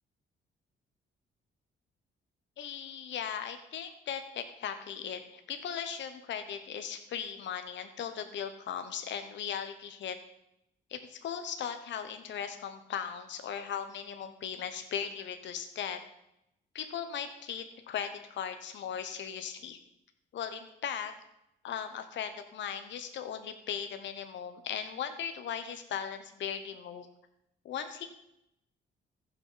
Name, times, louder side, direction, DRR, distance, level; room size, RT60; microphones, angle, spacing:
voice 1, 2.6-10.2 10.9-16.0 16.7-19.8 20.3-21.1 21.6-27.1 27.6-28.0, left 8 dB, 65° left, 8 dB, 1.0 m, -38 dB
15.0 x 6.1 x 5.6 m, 0.83 s
cardioid pair, 90°, 20 cm